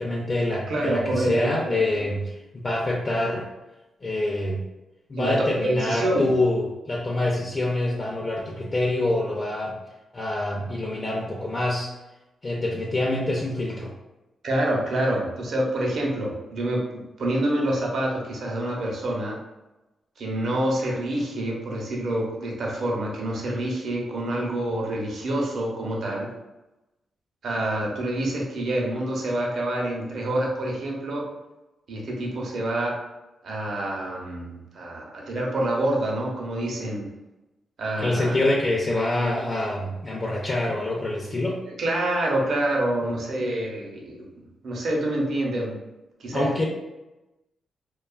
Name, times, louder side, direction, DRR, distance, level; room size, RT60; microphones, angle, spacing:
voice 1, 0.0-3.5 4.0-4.6 5.1-9.8 10.1-11.9 12.4-13.9 38.0-41.6 46.3-46.6, left 1 dB, 40° left, -2 dB, 0.5 m, -26 dB
voice 2, 0.7-2.1 5.1-6.3 14.4-19.4 20.2-26.3 27.4-31.3 31.9-33.0 33.4-37.1 37.8-38.4 41.8-45.8 46.2-46.5, right 1 dB, 70° right, -2 dB, 0.7 m, -27 dB
2.7 x 2.3 x 2.3 m, 1.0 s
cardioid pair, 80°, 0 cm